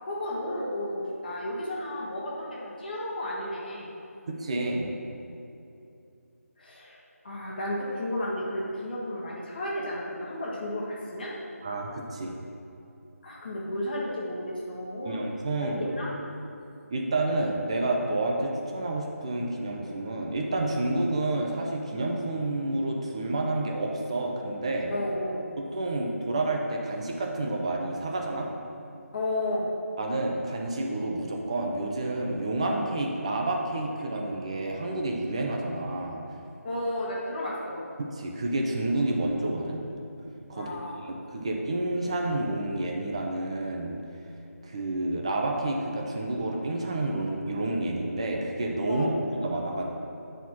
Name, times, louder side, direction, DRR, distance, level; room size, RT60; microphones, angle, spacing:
voice 1, 0.0-3.9 6.6-7.0 7.2-11.3 13.2-15.2 15.8-16.1 24.9-25.4 29.1-29.7 36.6-37.8 40.5-41.0 48.9-49.2, left 1 dB, 35° left, -5 dB, 1.3 m, -33 dB
voice 2, 4.3-5.0 11.6-12.4 15.0-15.8 16.9-24.9 25.7-28.5 30.0-36.2 38.0-39.8 40.5-40.7 41.1-44.0 44.6-49.1 49.4-49.8, right 2 dB, 20° right, 1 dB, 0.5 m, -29 dB
9.0 x 4.2 x 4.4 m, 2.7 s
figure-of-eight pair, 165°, 8 cm